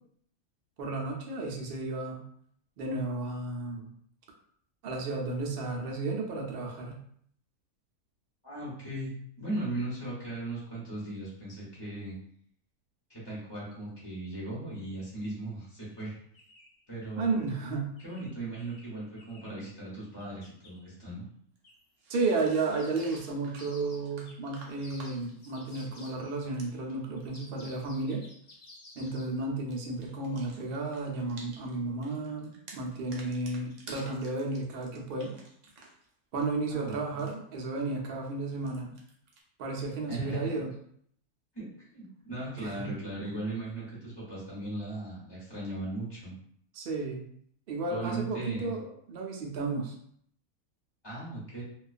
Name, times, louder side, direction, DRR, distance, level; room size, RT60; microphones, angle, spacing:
voice 1, 0.8-2.2 2.8-3.9 4.8-7.0 17.2-17.9 22.1-28.2 29.0-35.3 36.3-38.9 39.6-40.7 42.6-42.9 46.8-47.2 47.7-49.9, right 3 dB, 85° right, 0 dB, 0.5 m, -33 dB
voice 2, 8.4-12.2 13.1-16.2 16.9-17.4 18.0-21.2 36.7-36.9 40.1-40.5 41.5-46.3 47.9-48.7 51.0-51.6, right 2 dB, 20° left, -8 dB, 0.7 m, -38 dB
sound 1, 15.9-16.0 16.3-16.8 18.0-19.6 20.2-20.8 21.6-21.8 22.1-26.5 27.2-29.4, left 2 dB, 65° left, 0.4 m, -54 dB
sound 2, 21.6-21.7 22.0-27.5 28.9-29.3 29.6-31.8 32.0-36.1 36.4-37.4 38.5-39.4, right 2 dB, 65° right, 0.8 m, -53 dB
2.3 x 2.3 x 2.4 m, 0.66 s
omnidirectional pair, 1.6 m